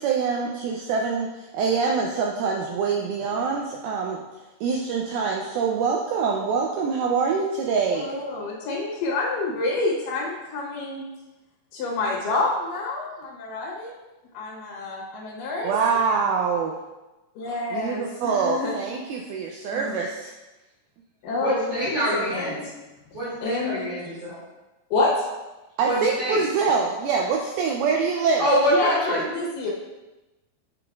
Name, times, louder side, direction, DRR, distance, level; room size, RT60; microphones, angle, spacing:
voice 1, 0.0-4.2 4.6-8.1 15.6-16.8 17.7-20.3 25.8-28.5, right 5 dB, 90° right, 0 dB, 2.1 m, -25 dB
voice 2, 7.9-11.1 11.7-13.9 14.3-15.8 17.4-18.7 19.7-20.0 21.2-22.5 23.4-23.9 24.9-25.2 28.7-29.7, left 2 dB, 70° left, -4 dB, 2.2 m, -28 dB
voice 3, 21.4-22.6 23.1-24.4 25.8-26.4 28.4-29.2, equal, 40° right, -11 dB, 2.8 m, -25 dB
8.2 x 5.1 x 2.3 m, 1.1 s
omnidirectional pair, 4.9 m